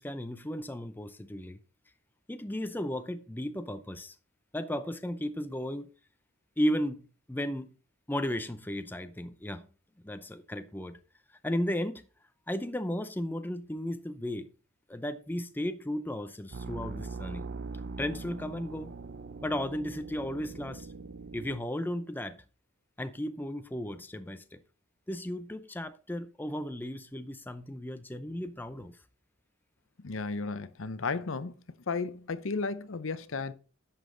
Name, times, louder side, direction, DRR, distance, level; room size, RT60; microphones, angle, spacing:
voice 1, 0.0-1.6 2.3-4.2 4.5-5.9 6.6-7.8 8.1-9.7 10.0-11.0 11.4-12.0 12.5-14.5 14.9-17.5 18.0-18.9 19.4-20.9 21.3-22.4 23.0-24.6 25.1-29.0, equal, 10° left, 0.6 m, -35 dB
sound 1, 16.5-21.6, right 3 dB, 50° right, 0.6 m, -41 dB
voice 2, 30.0-31.5 31.9-33.5, left 4 dB, 65° left, 0.7 m, -34 dB
11.0 x 7.3 x 3.9 m
head